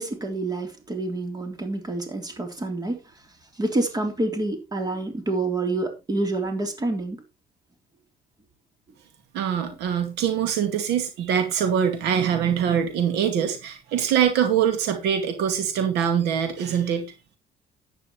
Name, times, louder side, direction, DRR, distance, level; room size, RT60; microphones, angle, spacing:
voice 1, 0.0-3.0 3.5-7.2, right 2 dB, 25° right, 3.5 m, -27 dB
voice 2, 9.3-17.1, right 8 dB, 85° right, 2.3 m, -23 dB
12.0 x 9.5 x 3.2 m
cardioid pair, 110°, 17 cm